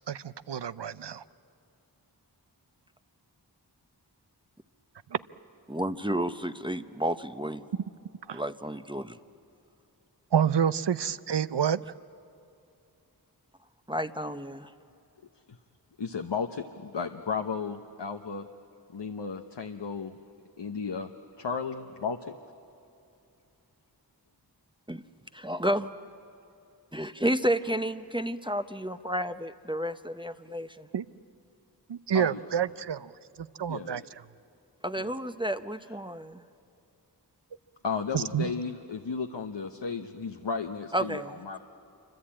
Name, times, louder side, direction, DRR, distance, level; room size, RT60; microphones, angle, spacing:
voice 1, 0.1-1.2 5.1-5.2 8.3-8.4 10.3-11.8 30.9-31.0 31.9-33.1 33.4-34.0 38.1-38.5, right 8 dB, 80° right, 15 dB, 0.6 m, -28 dB
voice 2, 5.7-7.7 8.3-9.2 13.9-14.7 24.9-25.0 25.3-25.9 26.9-30.9 34.8-36.4 40.9-41.3, right 1 dB, 10° right, 9 dB, 0.8 m, -31 dB
voice 3, 16.0-18.5 18.9-20.2 20.6-21.1 21.4-22.4 32.1-32.4 33.7-34.0 35.0-35.1 37.8-41.6, left 5 dB, 85° left, 5 dB, 1.0 m, -34 dB
27.5 x 25.0 x 8.7 m, 2.7 s
wide cardioid pair, 50°, 42 cm